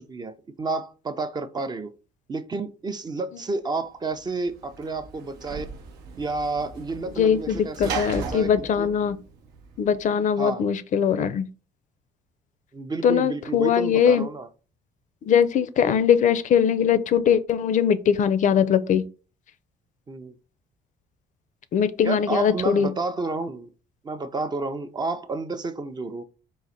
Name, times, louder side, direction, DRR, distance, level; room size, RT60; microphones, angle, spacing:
voice 1, 0.0-1.9 2.3-5.7 6.2-8.9 10.4-10.7 12.7-14.5 15.8-15.9 20.1-20.4 22.0-23.7 24.0-26.2, right 3 dB, 25° right, 0.4 m, -30 dB
Sliding door / Slam, 4.1-10.0, right 5 dB, 85° right, 0.8 m, -37 dB
voice 2, 7.2-9.2 9.8-11.5 13.0-14.3 15.2-19.0 21.7-22.9, left 8 dB, 50° left, 0.4 m, -21 dB
3.9 x 2.5 x 4.1 m
cardioid pair, 110°, 17 cm